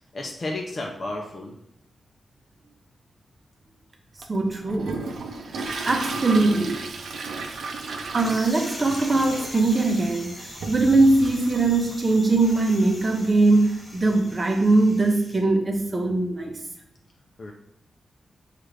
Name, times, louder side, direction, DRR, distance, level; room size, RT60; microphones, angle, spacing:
voice 1, 0.1-1.5 17.4-17.5, left 2 dB, 45° left, -1 dB, 0.6 m, -32 dB
Toilet flush, 4.2-14.4, right 3 dB, 85° right, 0.5 m, -35 dB
voice 2, 4.3-5.0 5.5-6.9 8.1-16.6, right 2 dB, 30° right, 3 dB, 0.7 m, -21 dB
sound 1, 8.2-15.4, left 1 dB, 25° left, 1.2 m, -41 dB
6.3 x 2.5 x 3.2 m, 0.78 s
wide cardioid pair, 95°, 0 cm